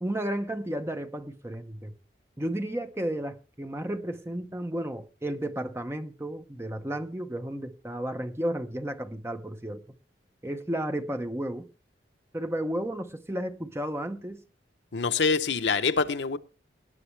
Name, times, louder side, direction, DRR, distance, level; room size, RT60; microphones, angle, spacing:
voice 1, 0.0-1.9 2.4-9.8 10.4-11.7 12.3-14.4, right 1 dB, 15° right, 0.9 m, -33 dB
voice 2, 14.9-16.4, left 5 dB, 70° left, 0.8 m, -25 dB
18.5 x 9.6 x 3.3 m
head